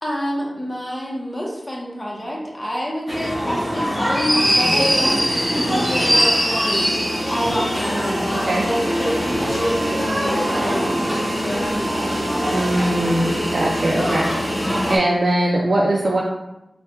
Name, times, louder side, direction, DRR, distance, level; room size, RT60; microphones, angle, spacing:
voice 1, 0.0-5.2 5.5-6.9 7.3-12.6, equal, 25° left, -3 dB, 0.9 m, -27 dB
sound 1, 3.1-15.0, equal, ahead, 1.1 m, -22 dB
voice 2, 12.5-14.3 14.9-16.2, right 1 dB, 70° right, -2 dB, 0.4 m, -20 dB
3.3 x 2.2 x 4.3 m, 0.93 s
wide cardioid pair, 85°, 0 cm